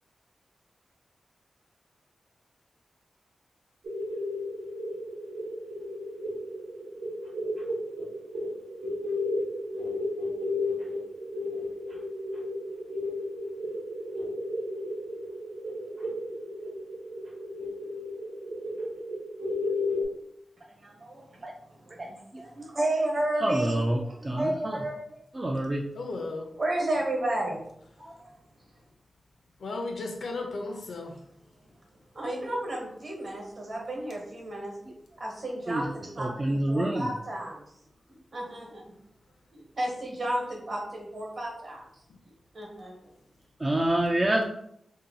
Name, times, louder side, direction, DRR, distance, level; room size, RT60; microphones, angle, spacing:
sound 1, 3.8-20.0, left 1 dB, 70° right, 0.9 m, -34 dB
voice 1, 20.7-24.3 26.6-27.6 28.0-28.4 32.1-34.7 35.2-37.6 38.3-38.8 39.5-41.8 42.5-43.1, right 1 dB, 45° right, -2 dB, 1.0 m, -33 dB
voice 2, 23.4-24.0 24.2-25.0 25.3-25.8 35.7-35.8 36.2-37.1 43.6-44.4, right 1 dB, 25° right, 0 dB, 0.3 m, -26 dB
voice 3, 25.9-26.5 29.6-31.2, left 3 dB, 85° left, 2 dB, 0.6 m, -35 dB
2.7 x 2.2 x 3.9 m, 0.72 s
wide cardioid pair, 165°, 0 cm